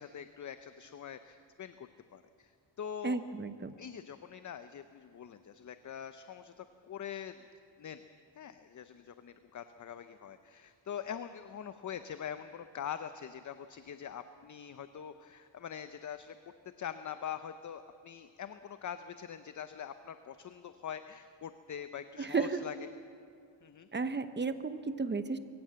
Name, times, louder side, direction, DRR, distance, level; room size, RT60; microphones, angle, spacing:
voice 1, 0.0-2.5 2.8-3.2 3.8-7.5 7.8-8.0 8.4-22.8 23.6-23.9, left 8 dB, 40° left, 10 dB, 0.7 m, -44 dB
voice 2, 3.0-3.7 22.2-22.6 23.9-25.4, right 4 dB, 20° right, 11 dB, 0.9 m, -33 dB
22.5 x 16.0 x 7.6 m, 2.3 s
cardioid pair, 115°, 48 cm